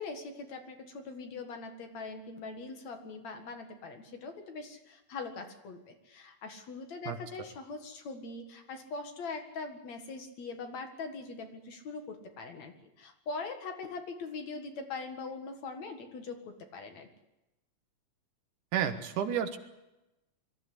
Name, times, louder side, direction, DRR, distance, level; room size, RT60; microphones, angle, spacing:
voice 1, 0.0-17.1, left 4 dB, 55° left, 5 dB, 2.9 m, -42 dB
voice 2, 18.7-19.6, right 9 dB, 70° right, 8 dB, 2.7 m, -30 dB
22.5 x 14.5 x 9.9 m, 0.97 s
omnidirectional pair, 3.9 m